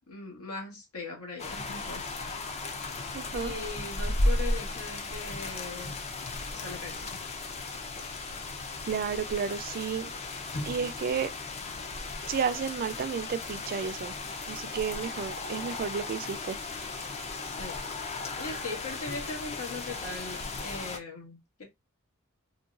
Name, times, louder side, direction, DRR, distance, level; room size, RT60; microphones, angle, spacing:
voice 1, 0.0-2.6 3.3-5.9 6.5-7.2 17.4-17.8 18.4-21.6, left 3 dB, 80° left, 1.4 m, -40 dB
sound 1, 1.4-21.0, left 2 dB, 30° left, 0.4 m, -35 dB
voice 2, 3.1-3.5 8.9-10.1 10.7-11.3 12.3-14.1 14.5-16.6, right 6 dB, 40° right, 0.3 m, -32 dB
3.8 x 2.3 x 2.4 m
head